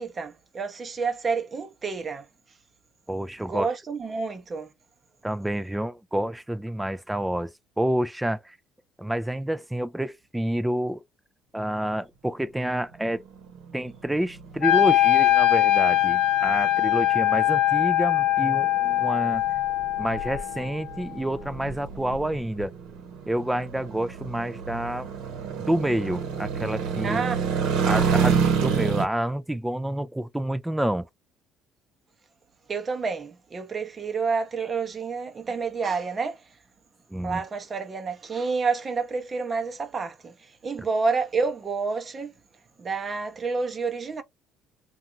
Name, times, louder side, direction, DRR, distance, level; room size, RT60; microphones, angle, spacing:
voice 1, 0.0-2.3 3.5-4.7 27.0-27.5 32.7-36.5 37.2-42.3 42.8-44.2, right 4 dB, 30° right, 0.7 m, -29 dB
voice 2, 3.1-3.7 5.2-8.6 9.0-11.0 11.5-13.2 13.7-19.4 20.0-22.7 23.3-25.1 25.7-27.2 27.8-31.1 37.1-37.4, right 1 dB, 5° right, 0.4 m, -28 dB
sound 1, 12.9-29.1, right 6 dB, 80° right, 0.9 m, -29 dB
Wind instrument woodwind instrument, 14.6-20.7, left 13 dB, 70° left, 0.5 m, -22 dB
2.5 x 2.3 x 2.9 m
cardioid pair, 110°, 0 cm